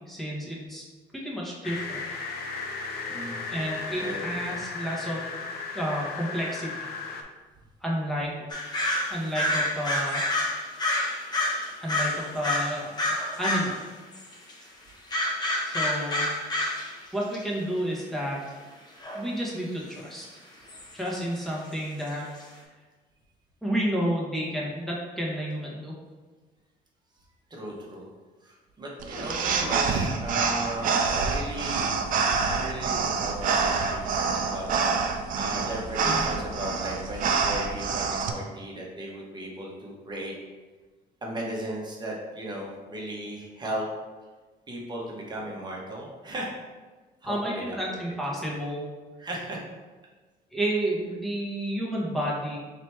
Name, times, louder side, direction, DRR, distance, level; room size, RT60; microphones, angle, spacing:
voice 1, 0.1-0.8 1.2-2.0 3.5-5.3 5.7-6.9 7.8-8.3 9.1-10.2 11.8-12.9 13.4-13.8 15.6-16.3 17.1-18.4 19.1-20.3 20.9-22.3 23.6-25.9 36.0-36.2 47.2-48.9 50.5-52.6, equal, ahead, -5 dB, 1.1 m, -30 dB
sound 1, 1.6-7.2, left 4 dB, 65° left, 0.6 m, -35 dB
voice 2, 3.1-3.4 4.0-4.6 27.5-28.0 28.4-34.7 35.4-40.3 41.2-43.9 44.7-46.5 47.2-48.4 49.2-49.6, right 1 dB, 25° right, -3 dB, 1.1 m, -36 dB
sound 2, 8.5-13.8 14.1-14.5 15.1-16.9 17.2-17.4 19.0-19.2 19.9-20.0 20.7-20.9 21.7-21.8 22.1-22.2 22.4-22.5, left 1 dB, 25° left, 0.8 m, -28 dB
sound 3, 29.0-38.3, right 5 dB, 55° right, 0.5 m, -27 dB
3.3 x 2.9 x 4.4 m, 1.3 s
cardioid pair, 110°, 17 cm